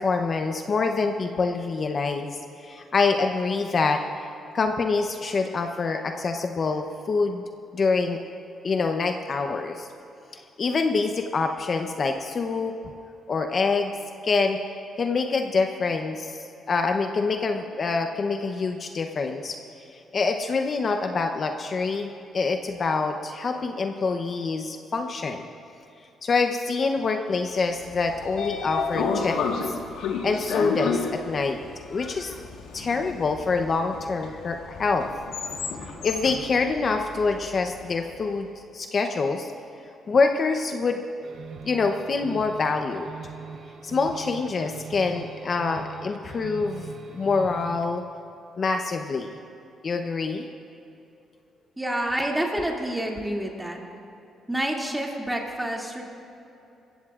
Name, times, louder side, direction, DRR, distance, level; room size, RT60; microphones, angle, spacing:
voice 1, 0.0-4.0 4.5-7.4 7.7-8.2 8.6-9.9 10.6-12.7 13.3-14.0 14.2-14.6 15.0-19.6 20.1-25.5 26.2-29.4 29.6-29.7 30.2-31.6 31.9-32.4 32.7-35.1 35.5-35.6 36.0-38.5 38.7-39.5 40.1-41.0 41.6-43.1 43.8-48.0 48.6-49.4 49.8-50.5, left 4 dB, 45° left, 5 dB, 0.8 m, -26 dB
Train / Sliding door, 27.8-37.9, left 5 dB, 90° left, 1.5 m, -31 dB
sound 1, 41.2-48.0, right 5 dB, 65° right, 1.0 m, -41 dB
voice 2, 51.8-53.8 54.5-56.0, right 1 dB, 10° right, -1 dB, 2.5 m, -28 dB
20.5 x 15.5 x 2.5 m, 2.9 s
cardioid pair, 90°, 0 cm